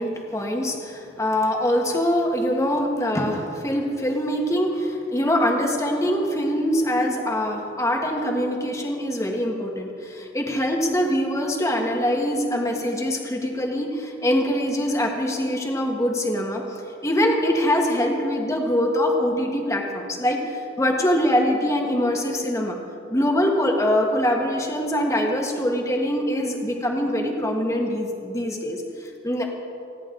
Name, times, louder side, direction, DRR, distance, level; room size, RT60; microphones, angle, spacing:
voice 1, 0.0-22.8 23.1-29.5, equal, 15° left, 1 dB, 1.6 m, -23 dB
29.5 x 11.0 x 3.9 m, 2.7 s
head